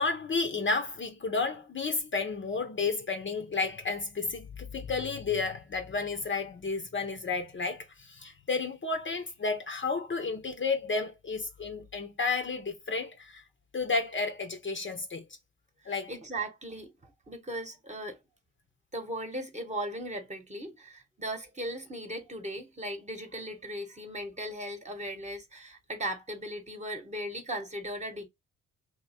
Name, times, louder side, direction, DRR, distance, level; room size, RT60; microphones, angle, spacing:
voice 1, 0.0-13.4 13.7-15.2 15.9-16.1, left 4 dB, 35° left, 0.8 m, -32 dB
voice 2, 15.8-18.2 18.9-28.3, right 1 dB, 20° right, 1.2 m, -38 dB
2.8 x 2.3 x 4.2 m
hypercardioid pair, 50°, 35 cm